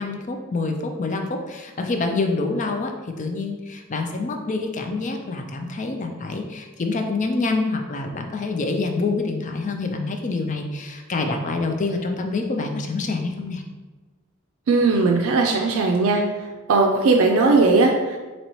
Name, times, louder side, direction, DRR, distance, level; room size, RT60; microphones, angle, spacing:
voice 1, 0.0-2.9 3.2-13.6, left 3 dB, 35° left, 4 dB, 0.4 m, -26 dB
voice 2, 14.7-16.2 16.7-18.2, right 3 dB, 75° right, 1 dB, 0.4 m, -18 dB
4.2 x 2.9 x 3.0 m, 1.3 s
head